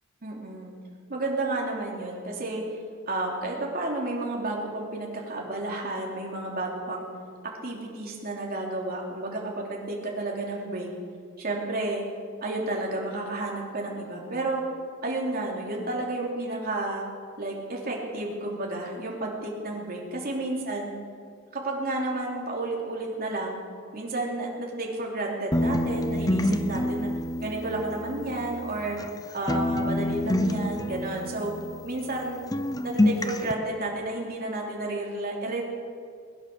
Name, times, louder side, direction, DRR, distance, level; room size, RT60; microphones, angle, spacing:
voice 1, 0.2-0.7 1.1-2.7 3.1-7.1 7.6-10.9 11.4-12.0 12.4-14.6 15.0-17.0 17.4-20.9 21.5-23.6 23.9-27.1 27.4-29.0 29.3-31.5 31.8-32.4 32.8-35.6, right 2 dB, 45° right, -2 dB, 3.2 m, -31 dB
sound 1, 25.5-29.2 29.5-32.3 32.5-33.5, left 1 dB, 20° left, 0.7 m, -27 dB
20.5 x 10.0 x 6.8 m, 2.1 s
head